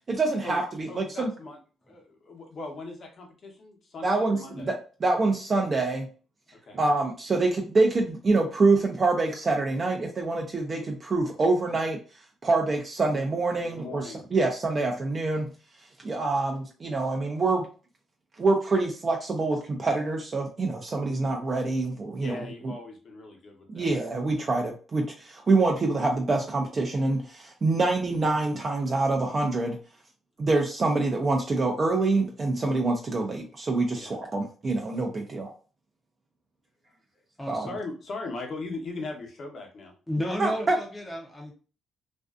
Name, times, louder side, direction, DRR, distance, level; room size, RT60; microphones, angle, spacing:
voice 1, 0.1-1.3 4.0-6.1 6.7-12.0 12.4-15.5 16.0-17.7 18.4-22.4 23.7-29.8 30.4-35.5 37.5-37.7 40.4-40.8, right 3 dB, 35° right, 1 dB, 0.5 m, -26 dB
voice 2, 0.9-1.6 1.9-4.7 6.6-6.8 13.5-14.5 22.2-23.9 33.9-34.1 37.7-39.9, left 3 dB, 55° left, 2 dB, 0.9 m, -39 dB
voice 3, 37.4-37.7 40.1-41.5, equal, 10° left, -1 dB, 0.6 m, -32 dB
2.5 x 2.3 x 2.4 m, 0.36 s
cardioid pair, 90°, 0 cm